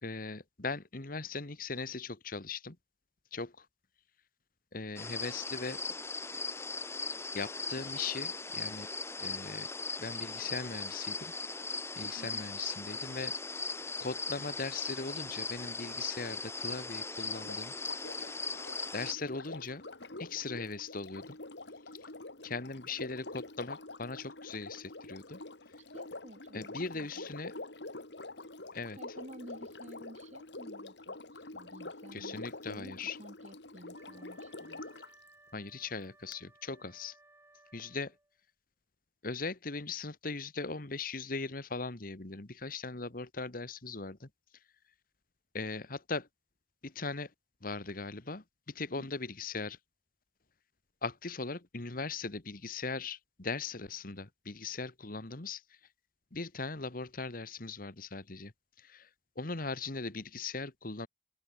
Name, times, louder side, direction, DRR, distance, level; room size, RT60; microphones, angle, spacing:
voice 1, 0.0-2.8 3.3-3.7 4.7-5.8 7.3-8.9 9.2-9.7 10.0-11.3 12.0-13.3 14.0-17.7 18.9-19.8 20.2-21.4 22.4-25.4 26.5-27.6 28.7-29.0 32.1-33.2 35.5-37.2 37.7-38.1 39.2-44.3 45.5-46.3 46.8-47.3 47.6-49.8 51.0-55.6 56.3-58.5 58.8-59.1 59.3-61.1, left 4 dB, 55° left, 1.6 m, -39 dB
sound 1, 5.0-19.1, left 3 dB, 15° left, 1.5 m, -39 dB
voice 2, 12.1-12.5 25.8-27.4 29.0-34.8 49.0-49.1, right 1 dB, 40° right, 4.6 m, -52 dB
Sink (filling or washing), 17.3-35.1 36.3-36.4, left 2 dB, 85° left, 3.1 m, -46 dB
Wind instrument woodwind instrument, 33.9-38.4, right 2 dB, 15° right, 4.0 m, -62 dB
open air
head